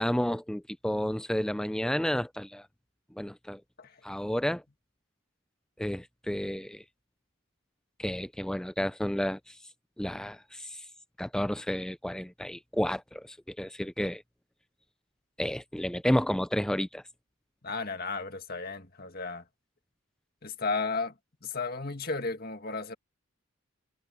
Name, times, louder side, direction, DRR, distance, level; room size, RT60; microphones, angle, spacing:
voice 1, 0.0-2.6 3.2-3.6 4.0-4.6 5.8-6.8 8.0-9.6 10.0-10.8 11.2-14.2 15.4-17.0, equal, 5° left, 0.3 m, -31 dB
voice 2, 17.6-19.4 20.4-21.1 21.4-22.9, left 4 dB, 45° left, 2.0 m, -34 dB
head